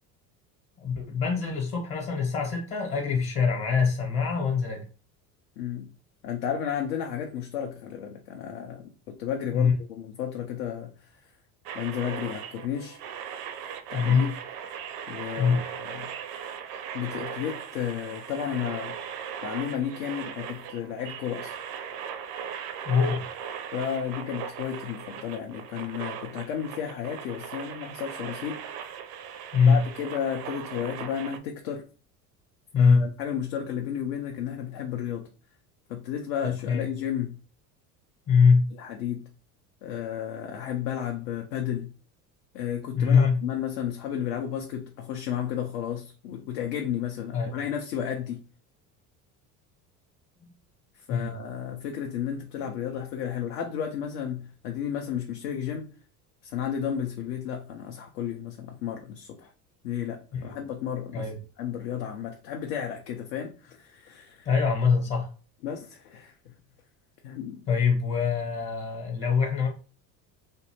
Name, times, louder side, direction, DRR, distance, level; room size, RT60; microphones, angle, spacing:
voice 1, 0.8-4.8 9.5-9.7 13.9-14.3 15.4-15.7 22.8-23.2 29.5-29.8 32.7-33.1 36.7-36.8 38.3-38.7 42.9-43.4 47.3-47.5 51.1-51.3 60.3-60.6 61.1-61.4 64.4-65.3 67.7-69.7, left 5 dB, 40° left, 1.0 m, -23 dB
voice 2, 5.6-5.9 6.2-11.1 11.7-13.0 13.9-14.3 15.1-16.1 16.9-19.0 19.4-21.5 23.7-28.6 29.6-31.8 32.8-35.3 35.9-37.4 38.8-39.3 39.8-41.9 42.5-48.4 51.0-55.9 56.4-59.5 59.8-61.3 61.6-64.5 65.6-66.5 67.2-67.6, left 9 dB, 70° left, 0.6 m, -33 dB
sound 1, 11.6-31.4, right 8 dB, 65° right, 0.5 m, -38 dB
2.6 x 2.1 x 2.9 m
hypercardioid pair, 70°, 49 cm